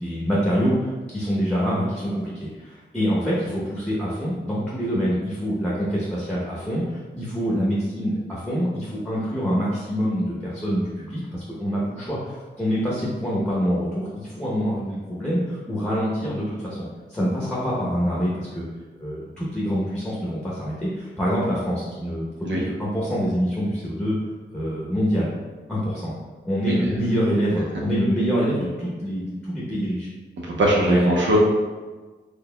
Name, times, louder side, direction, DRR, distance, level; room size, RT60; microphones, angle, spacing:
voice 1, 0.0-18.7 19.0-24.2 24.5-25.3 25.7-26.1 26.4-30.1 30.8-31.2, equal, 5° left, -6 dB, 0.8 m, -25 dB
voice 2, 30.4-31.4, right 1 dB, 75° right, -2 dB, 0.8 m, -21 dB
3.9 x 3.4 x 2.2 m, 1.3 s
wide cardioid pair, 90°, 20 cm